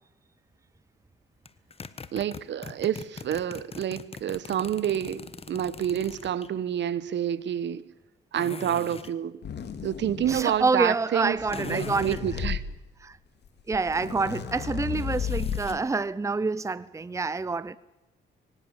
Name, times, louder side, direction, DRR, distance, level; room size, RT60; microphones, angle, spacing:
sound 1, 1.5-6.5 8.4-9.2 11.5-12.3 15.0-15.9, left 4 dB, 30° left, 1.4 m, -42 dB
voice 1, 2.1-7.9 8.3-9.5 9.8-12.6, right 10 dB, 65° right, 1.3 m, -29 dB
sound 2, 9.4-10.6 11.3-12.6 13.5-13.6 13.7-15.8, left 7 dB, 60° left, 2.6 m, -33 dB
voice 2, 10.3-12.2 13.0-13.2 13.7-17.8, right 4 dB, 15° right, 0.7 m, -27 dB
23.0 x 19.5 x 7.4 m
cardioid pair, 90°, 20 cm